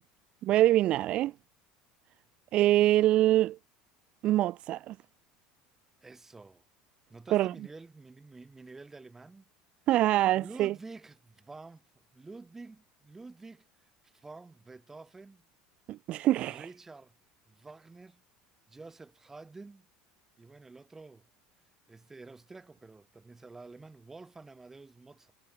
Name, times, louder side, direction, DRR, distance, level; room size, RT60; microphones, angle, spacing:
voice 1, 0.4-1.3 2.5-3.6 4.2-4.9 7.3-7.5 9.9-10.7 15.9-16.6, right 14 dB, 55° right, 0.5 m, -24 dB
voice 2, 6.0-6.6 7.1-9.5 10.3-15.4 16.4-17.1 17.5-18.2 18.7-19.9 20.4-21.3 21.9-25.3, right 3 dB, 15° right, 6.3 m, -49 dB
supercardioid pair, 95°, 2 cm